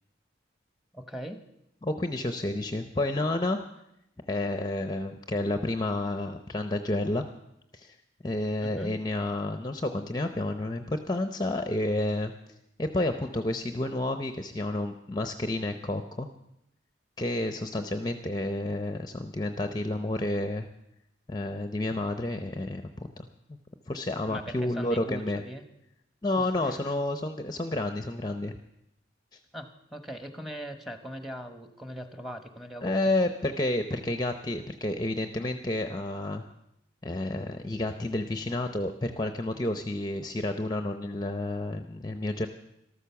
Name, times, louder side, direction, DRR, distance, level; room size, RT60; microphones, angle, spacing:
voice 1, 0.9-1.4 8.6-9.0 24.3-25.6 26.4-26.8 29.5-33.0, equal, ahead, 7 dB, 1.2 m, -40 dB
voice 2, 1.8-3.6 4.3-7.3 7.7-8.0 8.2-12.3 12.8-16.3 17.2-20.7 21.3-23.6 23.9-25.4 26.2-28.6 29.3-29.4 32.8-36.4 37.0-42.5, left 1 dB, 20° left, 7 dB, 0.7 m, -30 dB
13.5 x 13.0 x 7.0 m, 0.81 s
head